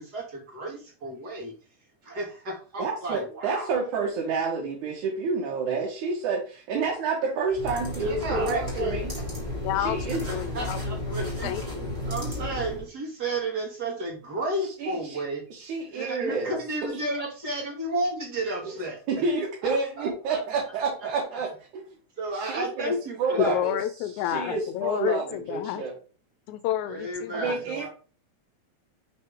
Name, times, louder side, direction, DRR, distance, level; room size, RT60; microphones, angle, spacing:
voice 1, 0.0-1.5 2.0-3.7 8.0-9.0 10.3-11.5 12.0-15.4 15.9-19.0 19.6-20.4 22.2-23.6 26.8-27.9, right 2 dB, 35° right, 0 dB, 2.2 m, -33 dB
voice 2, 2.8-9.1 9.8-10.3 14.8-15.2 15.5-16.6 16.9-17.0 18.7-18.8 19.1-21.8 22.3-22.9 23.2-23.7 24.2-25.9 27.3-27.9, right 4 dB, 85° right, -2 dB, 2.8 m, -29 dB
sound 1, 7.5-12.9, left 1 dB, 15° right, 2.2 m, -33 dB
voice 3, 9.6-11.9 23.4-25.9 26.5-27.6, left 12 dB, 80° left, 11 dB, 1.9 m, -30 dB
5.7 x 5.5 x 3.6 m, 0.37 s
omnidirectional pair, 3.3 m